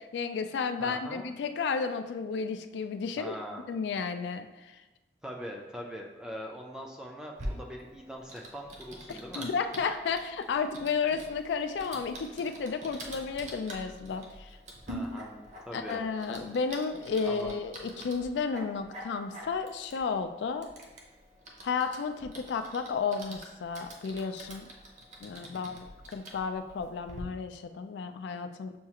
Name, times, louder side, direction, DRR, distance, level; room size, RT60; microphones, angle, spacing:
voice 1, 0.0-3.4 3.7-4.8 9.1-14.6 15.7-20.7 21.6-24.7 25.2-28.7, left 5 dB, 85° left, 8 dB, 0.3 m, -33 dB
voice 2, 0.8-1.3 3.2-3.6 5.2-9.5 14.9-16.0 16.3-16.6 17.2-17.5 25.5-25.8, equal, 5° right, -1 dB, 0.3 m, -42 dB
Typing, 7.4-27.2, right 1 dB, 40° right, 0.6 m, -46 dB
6.9 x 2.4 x 2.8 m, 1.1 s
head